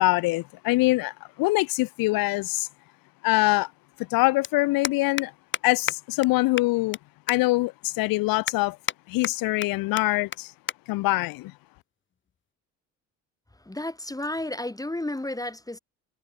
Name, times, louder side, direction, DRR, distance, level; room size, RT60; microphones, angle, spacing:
voice 1, 0.0-2.7 3.2-3.7 4.1-5.3 5.6-7.0 7.3-8.8 9.1-10.5 10.9-11.5, left 21 dB, 75° left, 1.2 m, -24 dB
sound 1, 3.7-3.8 3.9-4.1 4.4-4.5 4.8-5.3 5.5-5.6 5.9-6.0 6.2-6.3 6.6-7.0 7.3-7.4 7.8-7.9 8.5-9.0 9.2-9.7 10.0-10.1 10.3-10.4 10.7-10.8 11.1-11.3 12.1-12.4, left 7 dB, 35° left, 1.2 m, -30 dB
voice 2, 13.6-15.8, left 1 dB, 10° left, 3.1 m, -32 dB
supercardioid pair, 65°, 35 cm